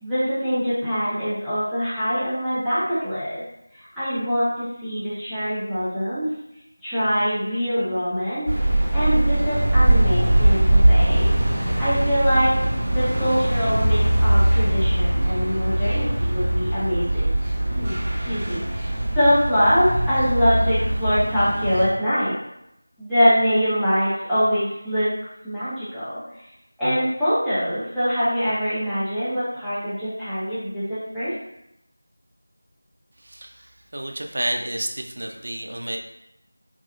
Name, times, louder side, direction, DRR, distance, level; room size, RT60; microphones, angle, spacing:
voice 1, 0.0-3.4 4.0-6.3 6.8-11.4 11.8-12.6 12.9-17.3 17.7-22.3 23.0-25.1 25.4-26.2 26.8-31.3, equal, ahead, -19 dB, 0.6 m, -24 dB
sound 1, 8.5-21.9, right 1 dB, 20° right, 0.8 m, -21 dB
voice 2, 33.2-36.0, right 1 dB, 50° right, 2 dB, 0.4 m, -30 dB
3.4 x 2.1 x 2.3 m, 0.82 s
figure-of-eight pair, 170°, 0 cm